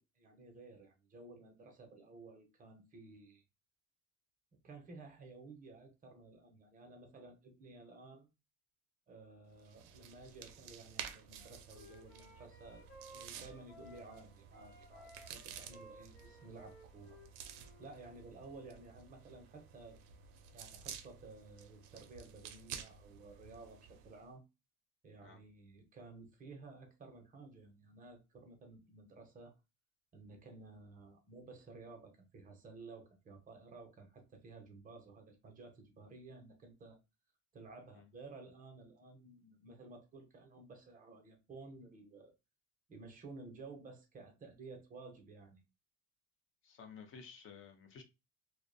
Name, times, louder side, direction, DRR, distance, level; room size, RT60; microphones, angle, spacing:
voice 1, 0.0-3.4 4.6-8.3 9.1-12.9 13.1-17.2 17.8-20.0 20.5-24.4 25.0-29.5 30.1-37.0 37.5-42.3 42.9-45.6, right 3 dB, 25° right, 0.6 m, -54 dB
sound 1, 9.6-24.2, right 8 dB, 70° right, 0.5 m, -52 dB
Wind instrument woodwind instrument, 11.4-14.3 14.5-18.0, equal, 80° left, 0.8 m, -58 dB
voice 2, 46.6-48.0, left 6 dB, 40° left, 0.6 m, -53 dB
2.5 x 2.1 x 2.5 m
cardioid pair, 145°, 33 cm